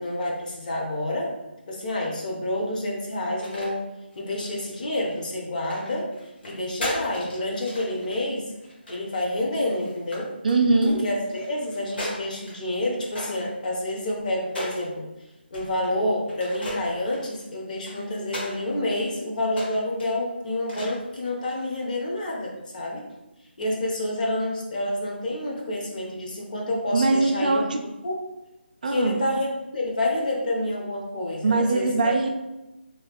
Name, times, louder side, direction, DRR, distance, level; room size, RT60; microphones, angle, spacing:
voice 1, 0.0-1.3 1.7-3.8 4.2-6.1 6.4-8.5 8.9-10.3 10.9-15.1 15.5-23.0 23.6-28.2 28.8-29.5 29.7-32.1, left 1 dB, 45° left, -2 dB, 0.8 m, -28 dB
sound 1, 3.2-3.7 4.1-5.1 5.6-9.3 9.7-10.2 10.5-12.5 13.0-14.9 15.5-15.9 16.3-18.6 19.0-19.1 19.5-20.1 20.7-21.1 21.4-21.7, left 1 dB, 60° left, 1.5 m, -37 dB
voice 2, 10.4-11.1 26.9-27.8 28.8-29.2 31.4-32.3, right 3 dB, 45° right, 4 dB, 0.3 m, -21 dB
3.1 x 2.3 x 3.4 m, 0.97 s
figure-of-eight pair, 165°, 6 cm